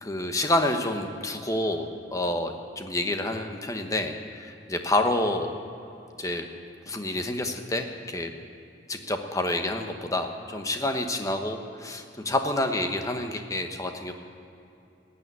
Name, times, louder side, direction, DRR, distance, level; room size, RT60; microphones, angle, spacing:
voice 1, 0.0-5.5 6.2-6.5 6.9-8.3 8.9-14.1, left 1 dB, 20° left, 5 dB, 1.0 m, -28 dB
15.5 x 8.6 x 9.5 m, 2.7 s
head